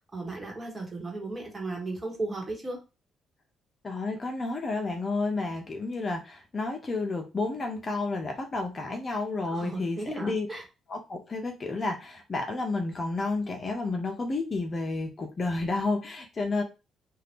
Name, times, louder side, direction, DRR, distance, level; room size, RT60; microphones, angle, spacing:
voice 1, 0.1-2.8 9.4-10.6, right 2 dB, 25° right, 0 dB, 1.4 m, -35 dB
voice 2, 3.8-10.5 10.9-16.6, left 3 dB, 35° left, 4 dB, 0.7 m, -31 dB
2.7 x 2.5 x 3.4 m, 0.28 s
cardioid pair, 90°, 0 cm